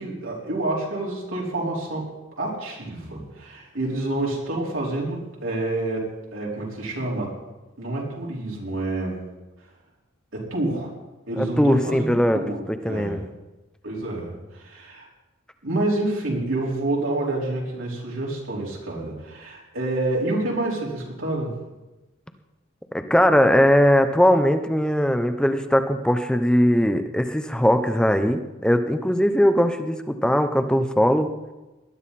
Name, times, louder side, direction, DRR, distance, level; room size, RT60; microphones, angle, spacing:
voice 1, 0.0-2.1 2.4-7.3 7.8-9.3 10.3-10.9 11.3-13.2 13.8-15.1 15.6-21.6, right 2 dB, 80° right, -4 dB, 4.7 m, -28 dB
voice 2, 11.4-12.4 12.7-13.3 22.9-31.3, equal, 5° left, 8 dB, 0.8 m, -20 dB
19.5 x 12.0 x 4.3 m, 1.1 s
head